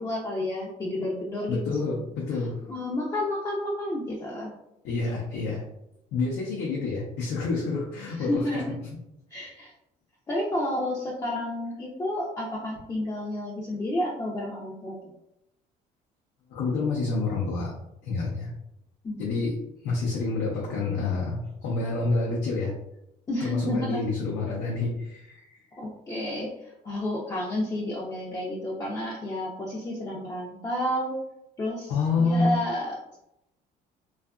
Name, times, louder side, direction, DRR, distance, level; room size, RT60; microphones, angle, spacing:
voice 1, 0.0-2.0 2.7-4.5 8.2-8.7 9.3-9.7 10.3-15.0 19.0-19.2 23.3-24.0 25.8-31.2 31.6-31.9 32.2-33.2, left 1 dB, 20° left, -4 dB, 0.5 m, -31 dB
voice 2, 1.5-2.6 4.8-5.7 6.1-8.6 16.5-17.7 18.0-18.5 19.2-19.6 19.8-22.8 23.4-25.6 31.9-32.6, left 3 dB, 85° left, -3 dB, 0.6 m, -28 dB
2.6 x 2.4 x 2.3 m, 0.84 s
cardioid pair, 110°, 17 cm